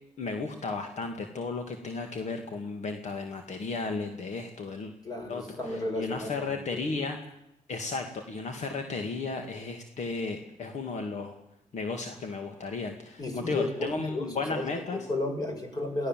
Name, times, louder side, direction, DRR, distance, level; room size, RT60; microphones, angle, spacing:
voice 1, 0.2-4.9 5.3-7.2 7.7-11.4 11.7-15.0, left 4 dB, 60° left, 5 dB, 2.3 m, -34 dB
voice 2, 5.0-6.9 13.2-16.1, left 2 dB, 30° left, 4 dB, 6.1 m, -33 dB
24.0 x 17.0 x 7.7 m, 0.86 s
cardioid pair, 110°, 13 cm